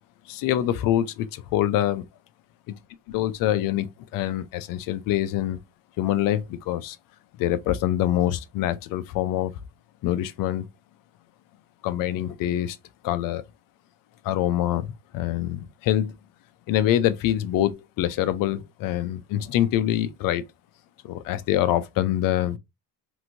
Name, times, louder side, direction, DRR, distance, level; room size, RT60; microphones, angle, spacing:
voice 1, 0.3-2.0 2.7-2.8 3.1-5.6 6.0-7.0 7.4-9.5 10.0-10.7 11.8-12.8 13.0-13.4 14.2-16.2 16.7-20.4 21.0-22.6, left 12 dB, 60° left, 0.5 m, -25 dB
2.9 x 2.6 x 2.7 m
cardioid pair, 130°, 39 cm